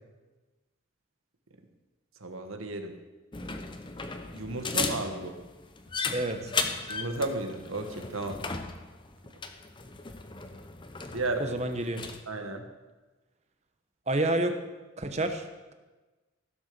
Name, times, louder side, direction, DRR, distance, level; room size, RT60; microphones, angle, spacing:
voice 1, 2.2-2.9 4.3-5.4 6.9-8.4 11.1-11.4 12.3-12.6, right 2 dB, 75° right, 5 dB, 1.5 m, -33 dB
sound 1, 3.3-12.2, left 4 dB, 20° left, 0.7 m, -36 dB
voice 2, 6.1-6.5 11.4-12.0 14.1-14.6 15.0-15.7, right 1 dB, 30° right, 7 dB, 1.0 m, -29 dB
15.5 x 6.9 x 6.8 m, 1.2 s
head